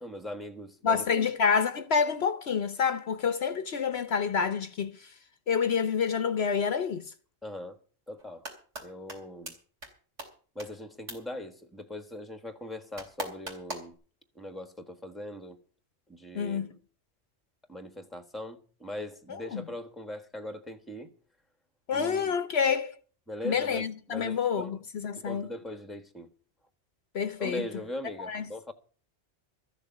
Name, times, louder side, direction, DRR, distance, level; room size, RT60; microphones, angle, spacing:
voice 1, 0.0-1.3 7.4-7.8 8.1-8.4 8.8-9.5 10.5-13.9 14.3-15.6 16.1-16.8 17.7-21.1 21.9-22.3 23.3-24.8 25.1-26.3 27.4-28.7, left 1 dB, ahead, 1.3 m, -40 dB
voice 2, 0.8-5.1 5.5-7.0 16.3-16.7 19.3-19.6 21.9-22.9 23.4-25.5 27.1-27.8 28.2-28.4, left 6 dB, 60° left, 1.0 m, -28 dB
sound 1, 8.2-8.8 9.1-9.2 9.5-9.6 9.8-9.9 10.2-10.3 10.6-10.7 11.1-11.2 13.0-13.9, right 1 dB, 90° right, 3.7 m, -37 dB
14.0 x 6.8 x 8.9 m
omnidirectional pair, 1.2 m